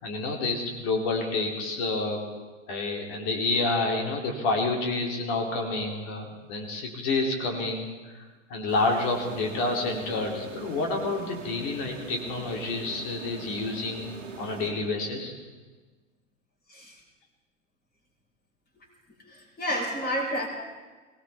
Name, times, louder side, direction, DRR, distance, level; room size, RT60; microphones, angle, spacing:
voice 1, 0.0-2.2 2.7-8.0 8.5-14.1 14.4-15.3, left 3 dB, 45° left, 1 dB, 2.9 m, -29 dB
sound 1, 8.7-15.3, right 4 dB, 75° right, 1.8 m, -42 dB
voice 2, 19.3-20.5, equal, 25° left, 0 dB, 4.9 m, -30 dB
22.5 x 18.0 x 3.4 m, 1.3 s
figure-of-eight pair, 95°, 38 cm